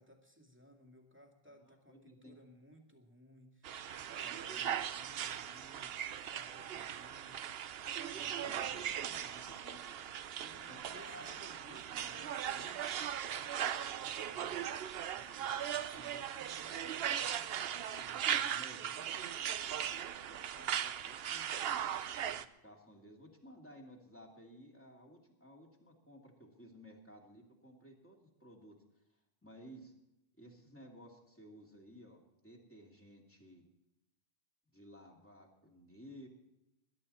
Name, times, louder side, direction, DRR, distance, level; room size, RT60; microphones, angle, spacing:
voice 1, 0.0-7.5 8.1-10.1 10.4-14.6 14.9-17.5 17.9-19.1, equal, 10° right, 2 dB, 2.3 m, -61 dB
voice 2, 1.5-2.4 4.2-4.7 8.4-9.2 9.5-10.0 10.5-11.3 11.7-12.2 15.2-15.5 18.5-19.8 20.2-21.6 22.2-28.8 29.4-29.9 30.4-33.7 34.7-36.3, equal, 10° left, 0 dB, 2.8 m, -56 dB
sound 1, 3.6-22.4, right 9 dB, 75° right, 0.9 m, -39 dB
21.5 x 11.5 x 4.3 m, 0.88 s
omnidirectional pair, 1.0 m